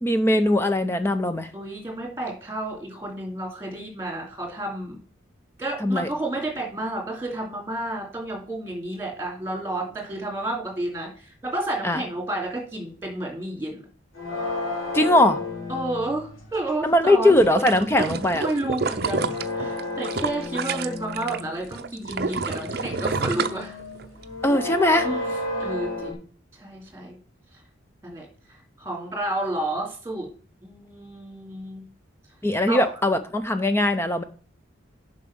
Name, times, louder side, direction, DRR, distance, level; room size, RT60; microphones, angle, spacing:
voice 1, 0.0-1.5 5.8-6.1 11.8-12.0 14.9-15.4 16.8-18.4 24.4-25.1 32.4-34.2, left 1 dB, 10° left, 9 dB, 0.6 m, -20 dB
voice 2, 1.5-5.0 5.6-13.8 15.7-17.4 17.9-19.3 19.5-23.8 25.0-25.3 25.6-26.2 26.5-27.2 28.0-30.3 30.6-31.8 32.7-32.9, right 1 dB, 10° right, 0 dB, 2.8 m, -31 dB
sound 1, 14.1-16.6 18.5-21.7 22.2-26.1, left 2 dB, 85° left, 3.1 m, -32 dB
sound 2, 17.3-21.4 21.7-24.2 24.7-24.8, right 4 dB, 50° right, 0.6 m, -29 dB
7.3 x 5.2 x 6.0 m, 0.41 s
head